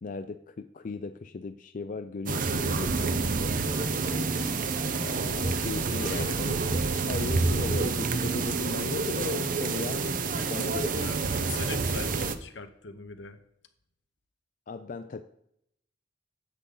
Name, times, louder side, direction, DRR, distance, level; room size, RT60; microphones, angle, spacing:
voice 1, 0.0-4.5 5.0-10.1 10.5-11.1 14.7-15.2, left 4 dB, 45° left, 8 dB, 0.4 m, -37 dB
sound 1, 2.3-12.4, right 4 dB, 50° right, 0.6 m, -28 dB
voice 2, 5.6-6.4 11.0-13.4, left 3 dB, 80° left, 8 dB, 1.0 m, -40 dB
9.8 x 8.0 x 3.9 m, 0.74 s
head